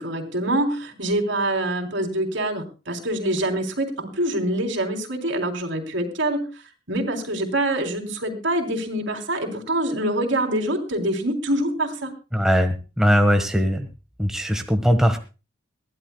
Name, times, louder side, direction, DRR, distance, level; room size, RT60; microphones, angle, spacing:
voice 1, 0.0-6.5 6.9-12.1, right 1 dB, 75° right, 4 dB, 3.6 m, -25 dB
voice 2, 12.3-13.9 14.2-15.2, equal, 5° right, 5 dB, 1.4 m, -20 dB
22.0 x 15.5 x 2.3 m, 0.31 s
head